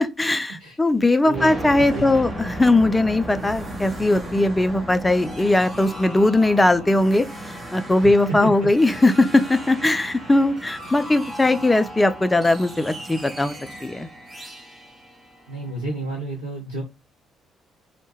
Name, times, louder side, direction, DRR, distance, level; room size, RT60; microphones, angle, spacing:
voice 1, 0.0-13.6 13.8-14.1, left 2 dB, 15° left, 0.3 m, -19 dB
voice 2, 1.2-2.2 8.0-8.1 8.4-8.5 15.5-16.8, right 2 dB, 90° right, 0.6 m, -31 dB
sound 1, 1.3-16.0, right 1 dB, 25° right, 0.7 m, -36 dB
2.1 x 2.1 x 3.0 m
figure-of-eight pair, 45°, 0 cm